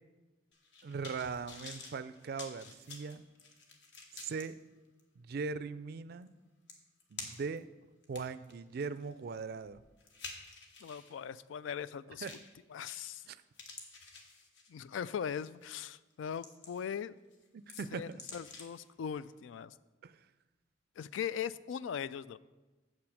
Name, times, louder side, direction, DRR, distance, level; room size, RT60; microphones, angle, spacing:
sound 1, 0.5-4.4 5.0-5.1 6.3-6.4 6.7-7.6 8.0-11.1 12.2-12.5 12.9-13.3 13.5-14.9 15.4-15.6 16.1-17.0 17.3-18.8 19.2-19.3, left 4 dB, 65° left, 1.3 m, -50 dB
voice 1, 0.8-3.2 4.1-4.6 5.2-6.3 7.1-7.7 8.1-9.8 12.2-12.4 13.3-13.4 17.5-18.2 20.0-20.2, right 5 dB, 55° right, 14 dB, 0.4 m, -40 dB
voice 2, 10.8-12.3 12.7-13.2 14.7-17.2 17.9-19.7 21.0-22.4, left 8 dB, 85° left, 17 dB, 0.3 m, -40 dB
7.6 x 6.0 x 6.4 m, 1.2 s
head